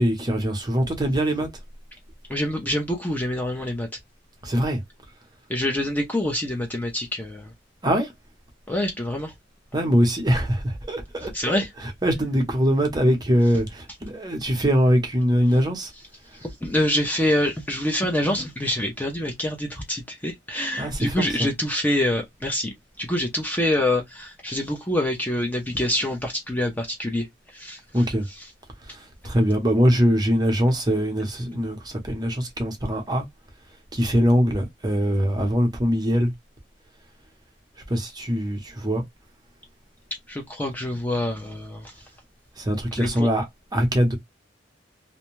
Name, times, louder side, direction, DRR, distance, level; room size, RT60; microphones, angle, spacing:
voice 1, 0.0-1.5 4.4-4.8 7.8-8.1 9.7-11.6 12.0-15.9 20.8-21.5 27.9-28.3 28.8-33.2 33.9-36.3 37.9-39.0 42.6-43.5 43.7-44.2, equal, 20° right, 0.7 m, -22 dB
voice 2, 2.3-3.9 5.5-7.5 8.7-9.3 11.3-11.7 16.4-27.3 27.5-28.5 40.3-42.0 43.0-43.3, left 1 dB, 10° left, 0.5 m, -26 dB
2.6 x 2.1 x 3.0 m
head